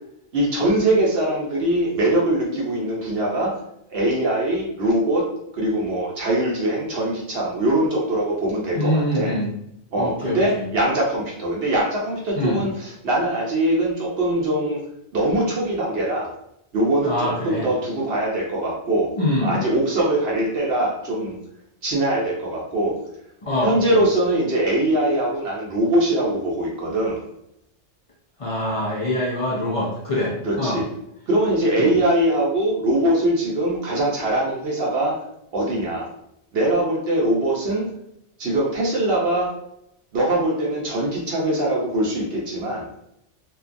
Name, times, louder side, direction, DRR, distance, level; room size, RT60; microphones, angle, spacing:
voice 1, 0.3-3.5 3.9-5.3 5.5-9.4 9.9-14.8 15.1-16.3 16.7-19.1 19.4-21.4 21.8-23.0 23.6-27.2 30.4-30.8 31.3-35.2 35.5-36.1 36.5-37.8 38.4-39.5 40.1-42.9, right 1 dB, 60° right, -3 dB, 0.8 m, -22 dB
voice 2, 8.7-9.5 10.0-10.7 12.4-12.6 17.0-17.7 19.2-19.6 23.4-24.0 28.4-30.8 31.8-31.9, left 1 dB, 55° left, -6 dB, 0.3 m, -24 dB
2.7 x 2.2 x 2.5 m, 0.78 s
omnidirectional pair, 1.2 m